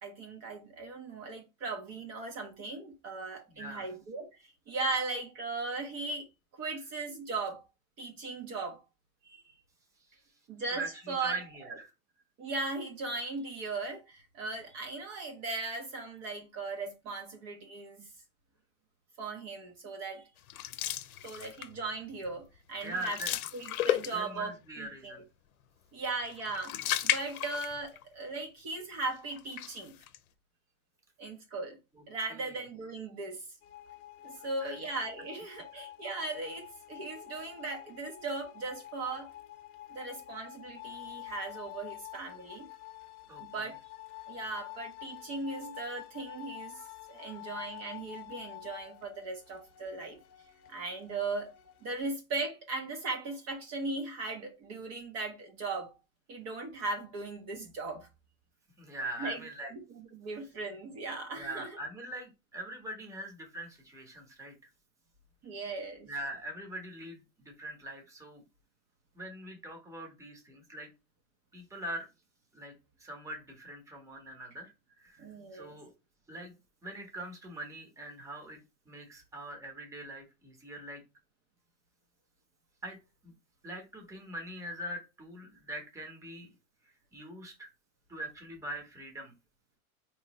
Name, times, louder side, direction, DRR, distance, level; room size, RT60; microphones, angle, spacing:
voice 1, 0.0-6.3 6.6-7.6 8.0-8.8 9.2-9.4 10.5-11.4 12.4-18.1 19.2-20.3 20.8-23.2 23.5-25.2 25.9-29.9 31.2-31.8 32.1-33.4 34.2-39.3 39.9-42.7 43.4-43.7 44.3-46.8 47.1-50.2 50.7-51.5 51.8-55.9 56.3-58.1 59.2-59.4 59.7-61.8 65.4-66.1 75.2-75.7, right 3 dB, 35° right, 0.9 m, -38 dB
voice 2, 3.5-3.9 10.1-10.2 10.7-11.9 22.8-23.3 24.0-25.2 32.0-32.1 32.3-32.6 34.6-34.8 35.7-35.8 43.3-43.4 58.8-59.7 61.3-64.5 66.1-68.4 69.1-70.9 71.5-72.1 72.5-72.7 73.0-74.7 75.0-75.3 75.5-75.9 76.3-76.5 76.8-78.6 78.9-81.0 82.8-83.3 83.6-86.5 86.8-87.7 88.1-89.3, right 1 dB, 5° right, 1.0 m, -42 dB
sound 1, 20.5-21.8 22.2-22.5 22.7-24.5 26.2-28.0 28.4-28.5 29.3-30.2, left 12 dB, 80° left, 0.7 m, -34 dB
sound 2, 33.6-52.0, left 17 dB, 40° left, 0.9 m, -48 dB
4.3 x 3.1 x 3.0 m
hypercardioid pair, 130°, 42 cm